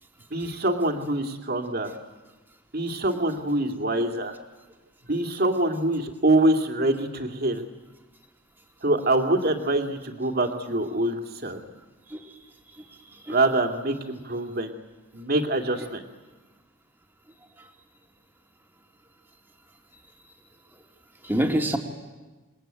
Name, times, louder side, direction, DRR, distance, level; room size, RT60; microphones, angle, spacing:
voice 1, 0.3-1.9 2.7-4.4 5.1-7.6 8.8-11.6 13.3-14.7 15.1-16.0, right 2 dB, 45° right, 5 dB, 2.6 m, -25 dB
voice 2, 12.7-13.4 15.8-15.9 17.6-17.7 21.2-21.8, right 1 dB, 10° right, 2 dB, 2.7 m, -29 dB
28.5 x 21.0 x 9.2 m, 1.2 s
head